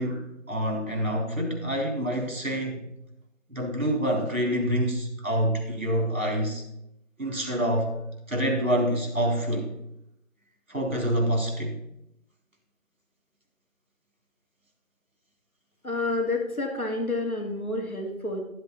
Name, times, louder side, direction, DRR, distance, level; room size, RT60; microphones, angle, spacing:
voice 1, 0.0-2.9 3.5-6.6 7.2-7.9 8.3-9.7 10.7-11.8, equal, 65° right, 3.8 m, -27 dB
voice 2, 15.8-18.4, left 2 dB, 85° left, 2.7 m, -29 dB
13.0 x 7.7 x 4.0 m
figure-of-eight pair, 175°, 42 cm